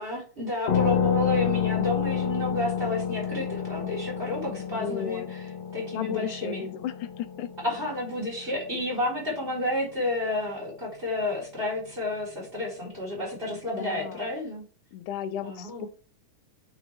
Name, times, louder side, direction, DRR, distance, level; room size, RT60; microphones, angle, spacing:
voice 1, 0.0-5.4 5.7-6.7 7.6-14.6 15.4-15.9, left 1 dB, 15° right, -4 dB, 3.9 m, -30 dB
sound 1, 0.7-9.9, left 8 dB, 60° left, 2.4 m, -30 dB
voice 2, 4.5-5.3 5.9-7.5 13.5-14.3 14.9-15.9, left 9 dB, 75° left, 12 dB, 2.1 m, -35 dB
8.6 x 6.2 x 3.4 m, 0.38 s
omnidirectional pair, 3.7 m